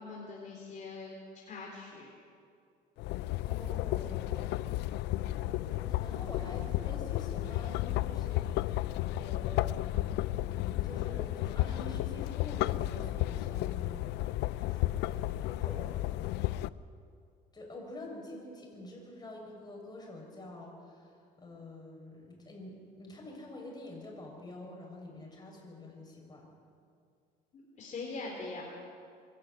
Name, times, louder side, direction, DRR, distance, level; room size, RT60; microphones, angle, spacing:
voice 1, 0.0-2.1 27.5-28.7, left 3 dB, 45° left, -2 dB, 3.8 m, -42 dB
sound 1, 3.0-16.7, left 15 dB, 85° left, 0.5 m, -33 dB
voice 2, 3.4-4.5 5.3-8.8 9.2-10.0 10.5-14.0 14.6-16.3 17.5-26.5, left 1 dB, 25° left, -1 dB, 6.8 m, -47 dB
23.0 x 13.0 x 9.3 m, 2.3 s
cardioid pair, 110°, 17 cm